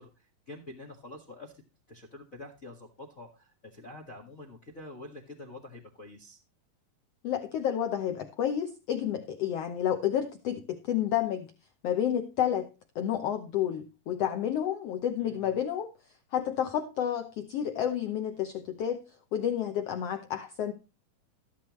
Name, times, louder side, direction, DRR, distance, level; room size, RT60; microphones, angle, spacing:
voice 1, 0.0-1.6 1.9-6.4 15.2-15.6, left 2 dB, 35° left, 1.5 m, -47 dB
voice 2, 7.2-11.5 11.8-12.7 12.9-15.9 16.3-19.0 19.3-20.7, left 10 dB, 75° left, 1.4 m, -30 dB
14.5 x 11.0 x 3.1 m
omnidirectional pair, 4.0 m